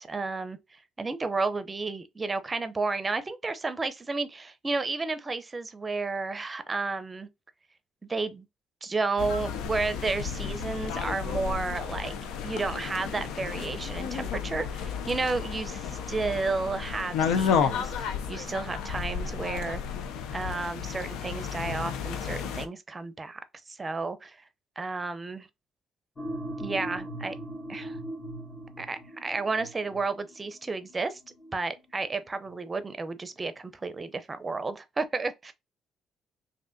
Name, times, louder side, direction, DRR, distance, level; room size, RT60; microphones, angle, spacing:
voice 1, 0.0-7.3 8.1-8.5 8.8-12.2 12.4-19.8 20.3-24.4 24.8-25.5 26.6-27.4 27.7-28.0 28.8-31.2 31.5-35.5, right 3 dB, 30° right, 0.6 m, -32 dB
sound 1, 9.2-22.7, left 7 dB, 85° left, 0.4 m, -32 dB
sound 2, 26.2-32.7, right 1 dB, 35° left, 1.4 m, -40 dB
3.3 x 2.6 x 2.6 m
supercardioid pair, 75°, 0 cm